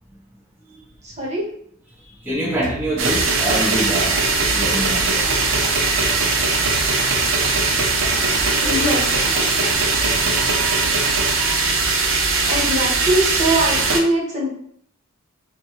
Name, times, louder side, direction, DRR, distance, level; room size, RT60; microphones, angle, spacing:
voice 1, 1.0-1.5 8.6-9.2 12.5-14.6, right 1 dB, 35° right, -4 dB, 1.3 m, -22 dB
voice 2, 2.2-4.1 4.5-5.2, right 1 dB, 10° right, -9 dB, 1.0 m, -24 dB
sound 1, 2.6-10.8, left 1 dB, 30° left, 1.2 m, -35 dB
sound 2, 3.0-14.0, right 3 dB, 65° right, 0.7 m, -20 dB
5.1 x 2.3 x 3.1 m, 0.66 s
head